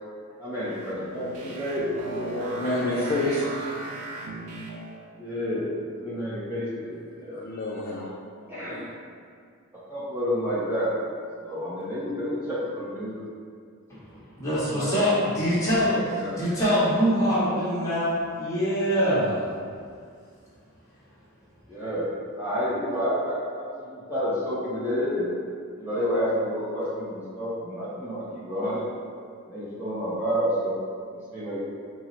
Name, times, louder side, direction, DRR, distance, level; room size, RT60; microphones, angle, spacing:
voice 1, 0.2-3.2 5.2-7.4 8.4-8.9 9.7-10.9 11.4-13.2 14.0-14.1 14.6-14.9 16.1-16.4 21.7-25.3 25.8-28.8 29.5-30.8 31.1-31.6, equal, 10° right, -10 dB, 0.6 m, -30 dB
sound 1, 0.6-5.1, right 2 dB, 85° right, 0.5 m, -37 dB
voice 2, 2.5-3.7 6.9-8.1 8.7-8.9, left 2 dB, 40° left, -4 dB, 0.3 m, -30 dB
voice 3, 14.1-19.4, equal, 15° left, -11 dB, 1.2 m, -24 dB
4.4 x 2.0 x 4.0 m, 2.2 s
head